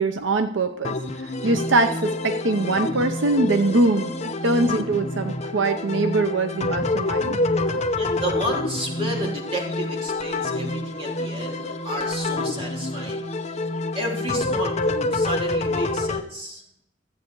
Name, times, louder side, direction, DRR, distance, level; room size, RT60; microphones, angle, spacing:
voice 1, 0.0-4.1 4.4-7.4 7.7-7.8, right 2 dB, 80° right, 8 dB, 0.7 m, -23 dB
sound 1, 0.8-16.2, left 2 dB, 35° left, 0.8 m, -27 dB
voice 2, 8.0-13.3 13.9-16.6, equal, 30° right, -1 dB, 3.1 m, -32 dB
14.0 x 8.5 x 4.7 m, 0.73 s
head